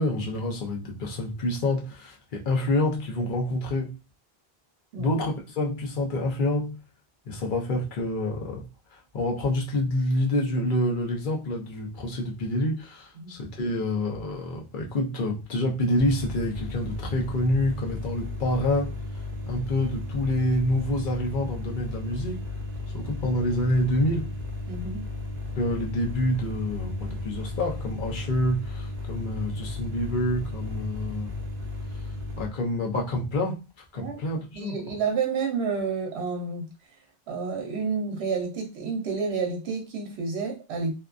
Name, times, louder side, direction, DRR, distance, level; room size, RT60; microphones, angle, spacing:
voice 1, 0.0-4.0 5.0-6.8 7.3-8.6 8.9-19.0 19.4-22.5 22.9-24.3 25.5-31.3 32.4-33.6 33.9-34.7, left 1 dB, 55° left, 0.8 m, -27 dB
sound 1, 16.0-32.5, left 2 dB, 50° right, 0.7 m, -34 dB
voice 2, 24.7-25.1 34.0-34.2 34.5-36.7 37.3-40.9, right 5 dB, 80° right, 1.0 m, -30 dB
2.7 x 2.3 x 2.4 m
omnidirectional pair, 1.0 m